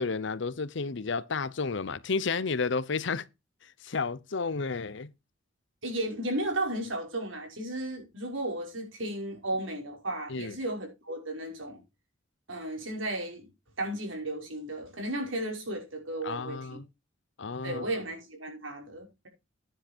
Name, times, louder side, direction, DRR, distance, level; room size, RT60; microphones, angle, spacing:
voice 1, 0.0-3.2 3.8-5.1 10.3-10.6 16.2-16.8 17.4-17.9, left 4 dB, 65° left, 0.8 m, -31 dB
voice 2, 5.8-11.8 12.5-13.5 13.8-16.8 17.6-19.3, right 1 dB, 85° right, 5.5 m, -34 dB
10.0 x 7.8 x 4.4 m
head